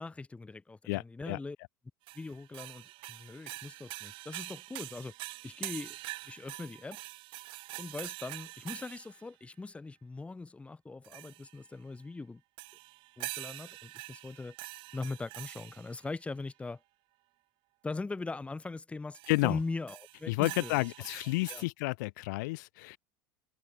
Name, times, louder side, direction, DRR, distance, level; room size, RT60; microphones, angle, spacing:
voice 1, 0.0-1.6 2.1-5.1 5.4-6.0 6.3-7.0 7.8-12.4 13.2-14.5 14.9-16.8 17.8-20.8 21.5-21.6, left 3 dB, 10° left, 0.7 m, -41 dB
voice 2, 0.9-1.4 19.3-19.6 20.3-23.0, left 24 dB, 65° left, 0.4 m, -31 dB
sound 1, 2.1-9.2 11.0-11.6 12.6-16.1 19.1-19.5 19.9-21.6, right 20 dB, 50° right, 0.9 m, -45 dB
hypercardioid pair, 80°, 11 cm